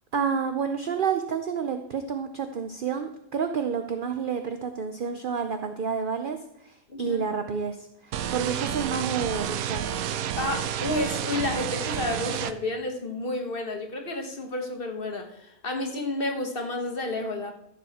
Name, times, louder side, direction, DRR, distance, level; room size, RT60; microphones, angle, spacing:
voice 1, 0.1-9.9, right 6 dB, 50° right, 7 dB, 0.7 m, -29 dB
sound 1, 8.1-12.5, right 10 dB, 80° right, 1.1 m, -30 dB
voice 2, 10.4-17.5, left 2 dB, 40° left, 2 dB, 1.5 m, -31 dB
14.5 x 7.1 x 4.3 m, 0.81 s
omnidirectional pair, 1.5 m